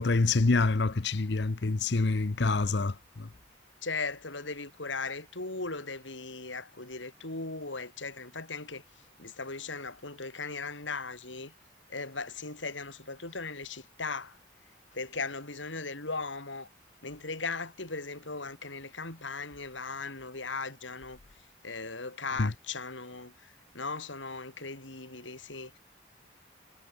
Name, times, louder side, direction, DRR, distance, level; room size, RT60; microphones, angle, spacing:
voice 1, 0.0-2.9 22.4-22.5, left 3 dB, 65° left, 0.8 m, -26 dB
voice 2, 3.8-8.8 9.2-11.5 11.9-14.4 14.9-16.7 17.0-21.2 21.6-25.8, left 4 dB, 85° left, 4.5 m, -38 dB
head